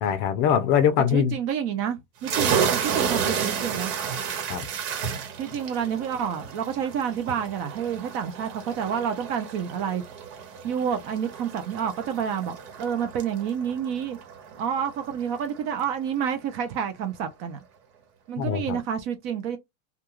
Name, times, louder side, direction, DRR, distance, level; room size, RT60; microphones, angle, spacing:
voice 1, 0.0-1.3 2.5-2.6 4.5-4.7 18.4-18.8, left 8 dB, 40° left, 0.5 m, -23 dB
voice 2, 1.1-3.9 5.4-10.0 10.6-14.2 14.6-17.6 18.3-19.6, right 8 dB, 35° right, 0.4 m, -29 dB
sound 1, 2.2-15.6, right 7 dB, 70° right, 1.2 m, -31 dB
2.3 x 2.3 x 2.9 m
supercardioid pair, 145°, 41 cm